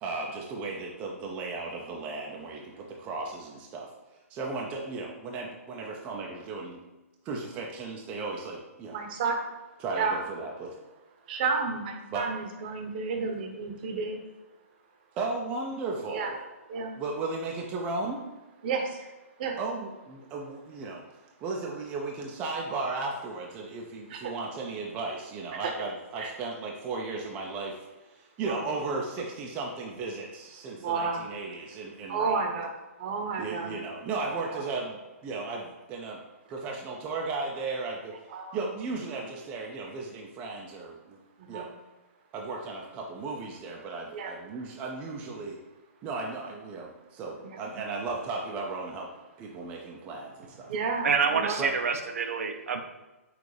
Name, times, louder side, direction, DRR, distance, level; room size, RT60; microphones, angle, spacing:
voice 1, 0.0-3.9 4.3-6.8 7.2-9.0 9.8-10.8 12.1-12.3 15.2-16.4 17.0-18.2 19.6-21.0 21.4-27.8 28.1-32.4 33.4-36.2 36.5-38.1 38.5-41.2 41.5-41.7 42.3-45.6 46.0-49.1 49.4-50.7 51.6-51.7, right 3 dB, 15° right, 0 dB, 0.4 m, -35 dB
voice 2, 8.9-9.4 9.9-10.2 11.3-14.2 16.1-16.3 16.7-16.9 18.6-19.0 19.4-19.5 24.1-24.3 26.2-26.3 28.4-28.7 30.8-31.2 32.1-32.7 33.0-33.8 34.3-34.6 38.3-38.6 41.4-41.7 44.1-44.3 49.8-49.9 50.6-51.6, right 5 dB, 40° right, 3 dB, 0.8 m, -31 dB
voice 3, 51.0-52.8, right 5 dB, 70° right, 5 dB, 0.5 m, -27 dB
6.0 x 2.4 x 3.2 m, 1.1 s
hypercardioid pair, 155°, 8 cm